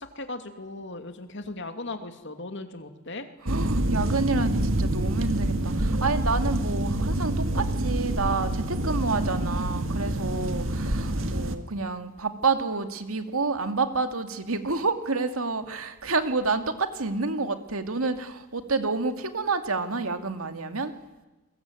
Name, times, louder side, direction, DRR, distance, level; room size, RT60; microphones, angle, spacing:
voice 1, 0.0-3.3, left 2 dB, 55° left, 7 dB, 2.7 m, -37 dB
sound 1, 3.5-11.6, right 1 dB, 65° right, 2.0 m, -27 dB
voice 2, 3.5-20.9, right 3 dB, 80° right, 7 dB, 2.3 m, -29 dB
28.5 x 22.5 x 9.1 m, 1.1 s
head